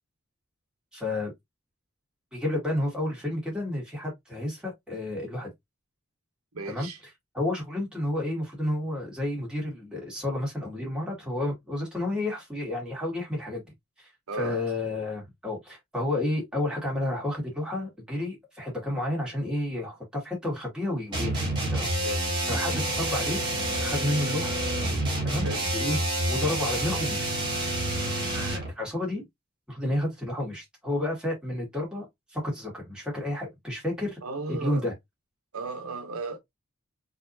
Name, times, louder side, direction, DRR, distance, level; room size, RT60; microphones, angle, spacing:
voice 1, 0.9-1.3 2.3-5.5 6.7-6.9 7.3-13.6 14.0-14.1 14.4-22.1 22.5-23.4 23.7-24.6 25.2-26.0 26.3-27.3 28.0-29.3 29.7-34.2 34.5-34.9, left 1 dB, 5° right, 2.2 m, -31 dB
voice 2, 6.5-7.0 14.3-14.6 22.0-22.3 25.4-25.6 34.2-34.9 35.5-36.4, right 3 dB, 80° right, 0.9 m, -35 dB
sound 1, 21.1-28.7, right 1 dB, 20° right, 2.0 m, -28 dB
4.2 x 3.6 x 2.7 m
head